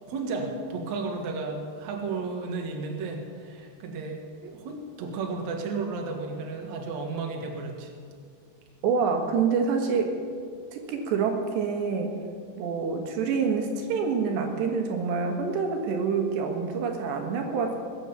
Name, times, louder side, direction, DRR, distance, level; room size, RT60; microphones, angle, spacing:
voice 1, 0.0-7.9, right 4 dB, 55° right, 1 dB, 2.2 m, -33 dB
voice 2, 8.8-10.2 10.7-12.2 12.6-17.8, right 5 dB, 75° right, 3 dB, 3.6 m, -27 dB
21.5 x 9.1 x 7.1 m, 2.1 s
omnidirectional pair, 5.2 m